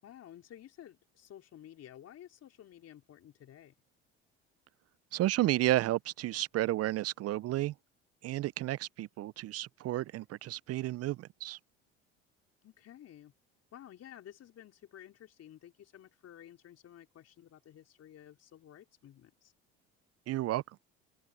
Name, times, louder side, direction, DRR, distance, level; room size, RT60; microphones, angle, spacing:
voice 1, 0.0-3.8 12.6-13.3 13.7-19.5, left 11 dB, 50° left, 4.5 m, -53 dB
voice 2, 5.1-7.7 8.2-11.6 20.3-20.6, right 15 dB, 50° right, 0.7 m, -32 dB
hypercardioid pair, 65°, 31 cm